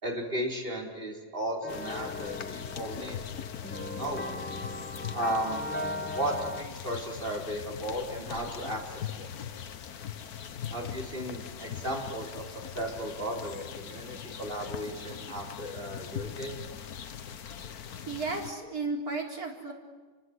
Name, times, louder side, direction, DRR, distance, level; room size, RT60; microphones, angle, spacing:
voice 1, 0.0-3.2 3.9-4.2 5.1-5.6 6.0-9.3 10.7-12.4 12.7-16.6, equal, 35° right, 1 dB, 4.5 m, -35 dB
sound 1, 1.6-6.6, left 1 dB, 10° left, 1.2 m, -37 dB
sound 2, 1.7-18.5, left 8 dB, 85° left, 1.6 m, -41 dB
voice 2, 18.1-19.7, right 3 dB, 75° right, 1 dB, 4.6 m, -33 dB
29.0 x 24.5 x 8.0 m, 1.3 s
omnidirectional pair, 1.6 m